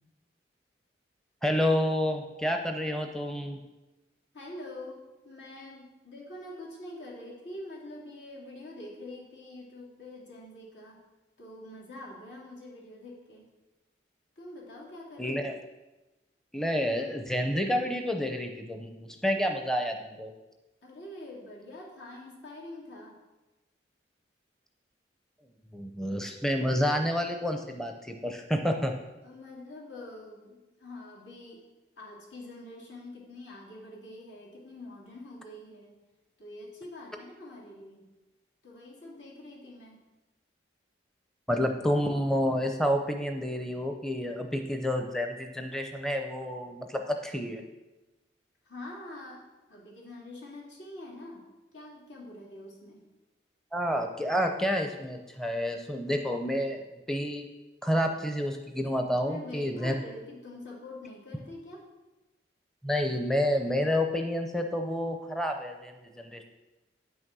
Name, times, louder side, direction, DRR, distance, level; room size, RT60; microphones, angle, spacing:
voice 1, 1.4-3.6 15.2-15.6 16.5-20.3 25.7-28.9 41.5-47.6 53.7-57.4 57.8-59.9 62.8-66.4, equal, 5° left, 4 dB, 0.6 m, -29 dB
voice 2, 4.3-11.0 11.4-13.4 14.4-15.4 20.8-23.2 29.2-31.6 32.0-36.0 36.4-38.1 38.6-40.0 48.6-51.5 51.7-53.1 59.2-61.9, left 1 dB, 80° left, -4 dB, 2.9 m, -45 dB
8.9 x 6.3 x 6.1 m, 1.1 s
head